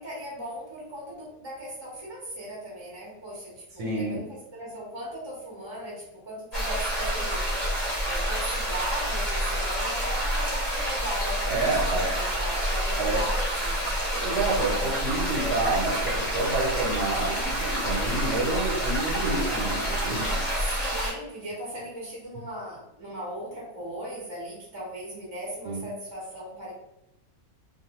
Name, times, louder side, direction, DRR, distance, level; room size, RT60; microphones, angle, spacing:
voice 1, 0.0-7.5 8.0-13.9 20.5-26.7, equal, 25° right, -5 dB, 0.6 m, -38 dB
voice 2, 3.8-4.2 11.5-12.1 13.0-13.2 14.1-20.4 25.6-25.8, right 2 dB, 85° right, -3 dB, 1.3 m, -28 dB
sound 1, 6.5-21.1, equal, 35° left, 0.7 m, -28 dB
2.6 x 2.2 x 2.9 m, 0.88 s
omnidirectional pair, 1.7 m